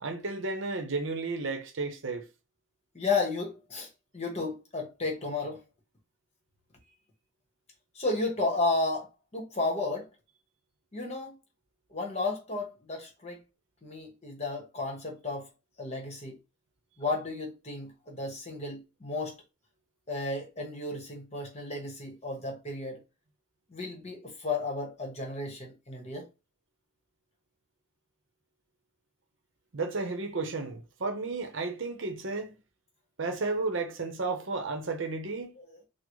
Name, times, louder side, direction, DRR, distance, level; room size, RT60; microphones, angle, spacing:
voice 1, 0.0-2.3 29.7-32.6 33.2-35.5, right 3 dB, 65° right, 0.7 m, -33 dB
voice 2, 2.9-3.9 4.1-5.6 7.9-10.1 10.9-11.4 11.9-13.4 13.8-15.5 15.8-16.4 17.0-19.4 20.1-23.0 23.7-26.3 35.6-35.7, left 3 dB, 30° left, 1.0 m, -33 dB
3.8 x 2.0 x 3.1 m
head